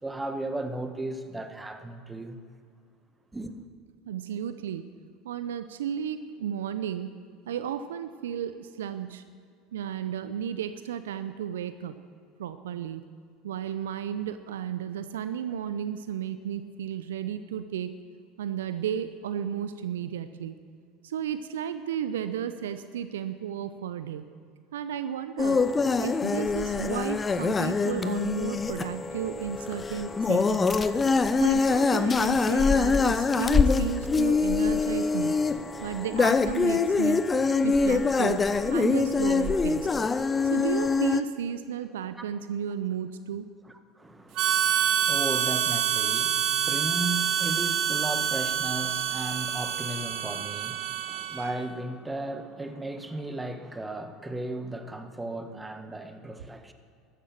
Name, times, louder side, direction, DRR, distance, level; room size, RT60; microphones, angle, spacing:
voice 1, 0.0-2.4 3.3-3.5 42.1-42.2 44.0-56.7, right 2 dB, 10° right, 8 dB, 1.4 m, -35 dB
voice 2, 4.1-4.8 5.2-7.1 7.5-9.2 9.7-11.9 12.4-13.0 13.4-17.9 18.4-20.5 21.0-24.2 24.7-25.6 26.0-30.7 31.4-35.3 35.8-37.2 37.6-38.4 38.7-39.9 40.4-43.5, right 9 dB, 75° right, 11 dB, 0.6 m, -33 dB
sound 1, 25.4-41.2, left 4 dB, 25° left, 0.7 m, -24 dB
Harmonica, 44.4-51.6, right 9 dB, 50° right, 1.3 m, -27 dB
14.5 x 12.5 x 7.2 m, 2.3 s
figure-of-eight pair, 70°, 0 cm